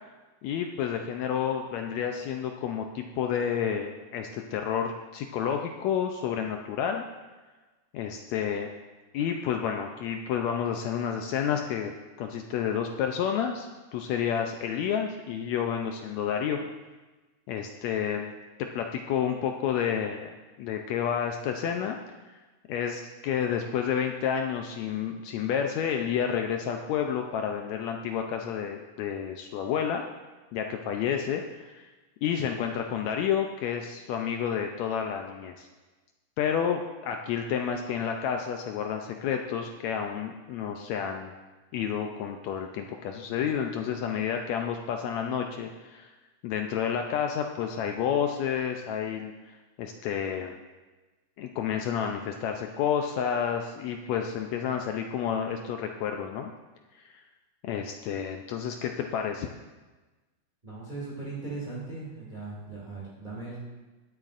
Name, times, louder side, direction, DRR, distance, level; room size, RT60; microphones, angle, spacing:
voice 1, 0.4-7.0 7.9-8.7 9.1-16.6 17.5-18.3 18.6-20.3 20.6-22.0 22.7-30.1 30.5-31.8 32.2-35.7 36.4-41.3 41.7-46.1 46.4-49.5 49.8-50.6 51.4-56.5 57.0-57.1 57.6-59.5, left 8 dB, 85° left, 4 dB, 1.5 m, -30 dB
voice 2, 60.6-63.6, right 3 dB, 15° right, -6 dB, 2.0 m, -38 dB
19.0 x 8.9 x 2.5 m, 1.2 s
omnidirectional pair, 3.8 m